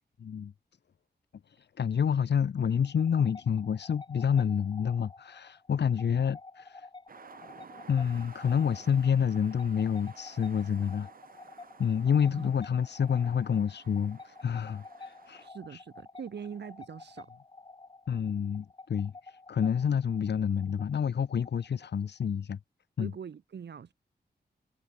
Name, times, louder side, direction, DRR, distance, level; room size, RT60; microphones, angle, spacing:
voice 1, 0.2-0.5 1.6-6.9 7.9-11.1 11.8-15.8 18.1-22.6 23.0-23.1, left 7 dB, 85° left, 2.3 m, -28 dB
sound 1, 2.8-22.2, left 3 dB, 25° left, 6.0 m, -51 dB
sound 2, 7.1-15.5, right 6 dB, 55° right, 5.2 m, -54 dB
voice 2, 15.4-17.3 23.0-23.9, right 7 dB, 85° right, 5.7 m, -43 dB
wide cardioid pair, 175°, 17 cm